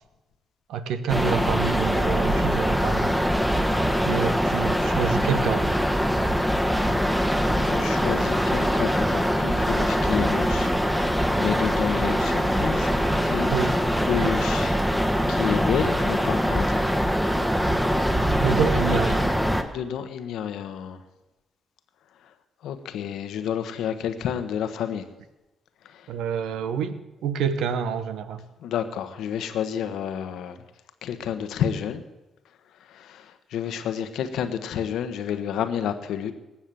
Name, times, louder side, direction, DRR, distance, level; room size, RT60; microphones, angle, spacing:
voice 1, 0.7-3.1 4.0-5.7 13.5-13.8 14.2-14.3 18.4-19.3 26.1-28.4, right 7 dB, 75° right, 12 dB, 1.0 m, -27 dB
sound 1, 1.1-19.6, equal, 5° right, 1.6 m, -23 dB
voice 2, 7.5-12.9 13.2-13.5 14.0-14.8 15.3-16.8 19.7-21.0 22.2-22.3 22.6-25.1 25.8-26.1 28.6-30.6 31.0-32.0 32.9-36.3, left 8 dB, 75° left, 9 dB, 1.1 m, -30 dB
19.0 x 7.3 x 7.6 m, 1.0 s
hypercardioid pair, 50°, 0 cm